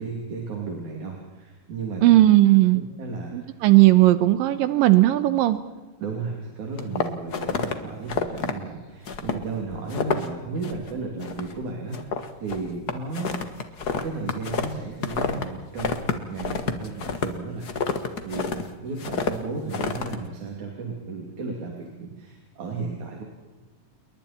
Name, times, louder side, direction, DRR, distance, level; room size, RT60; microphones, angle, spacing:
voice 1, 0.0-2.0 3.0-3.6 6.0-13.4 14.0-23.2, right 4 dB, 60° right, 0 dB, 4.2 m, -34 dB
voice 2, 2.0-2.8 3.3-5.6, right 16 dB, 85° right, 12 dB, 2.6 m, -17 dB
sound 1, 6.8-7.7 8.1-8.5 9.1-9.4 9.7-10.3 10.6-10.9 11.2-11.6 11.9-15.5 15.8-18.6 19.0-19.3 19.7-20.2, left 5 dB, 45° left, 1.2 m, -28 dB
28.5 x 23.0 x 4.4 m, 1.2 s
omnidirectional pair, 4.0 m